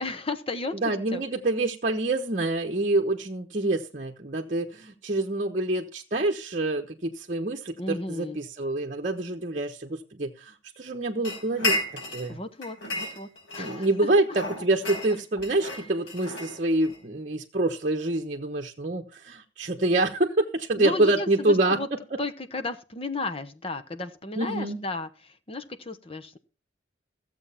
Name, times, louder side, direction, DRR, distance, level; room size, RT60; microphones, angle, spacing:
voice 1, 0.0-1.2 7.8-8.4 12.3-13.9 15.7-15.8 20.7-21.9 22.2-26.4, left 3 dB, 30° left, 9 dB, 1.0 m, -34 dB
voice 2, 0.7-12.4 13.6-21.8 24.4-24.8, right 2 dB, 40° right, 2 dB, 1.1 m, -26 dB
sound 1, 11.2-12.3 12.6-13.9 14.3-17.0, left 2 dB, 70° left, 5.8 m, -32 dB
15.0 x 7.7 x 5.7 m, 0.33 s
head